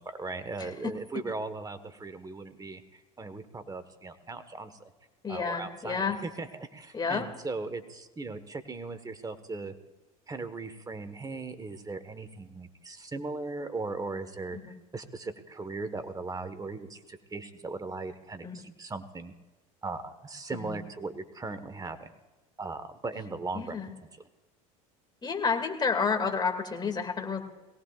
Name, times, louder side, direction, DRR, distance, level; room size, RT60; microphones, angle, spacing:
voice 1, 0.0-4.9 5.3-9.7 10.3-19.3 19.8-22.1 22.6-23.8, right 3 dB, 20° right, 11 dB, 1.4 m, -38 dB
voice 2, 5.2-6.2 6.9-7.3 14.5-14.7 18.4-18.6 20.5-20.8 23.5-23.9 25.2-27.4, left 5 dB, 25° left, 4 dB, 2.4 m, -30 dB
22.5 x 17.5 x 2.5 m, 1.2 s
hypercardioid pair, 85°, 18 cm